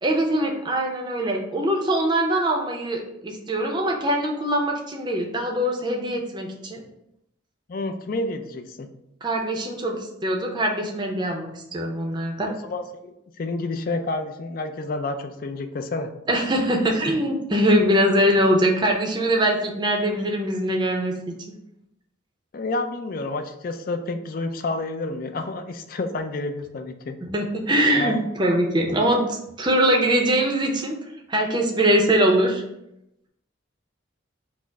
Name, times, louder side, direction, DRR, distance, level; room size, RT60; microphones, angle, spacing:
voice 1, 0.0-6.8 9.2-12.5 16.3-21.3 27.3-30.9 31.3-32.6, right 1 dB, 20° right, 0 dB, 0.5 m, -22 dB
voice 2, 7.7-8.9 12.4-16.1 22.5-27.2 27.9-28.3, left 2 dB, 45° left, 7 dB, 0.3 m, -29 dB
4.4 x 2.0 x 4.5 m, 0.83 s
head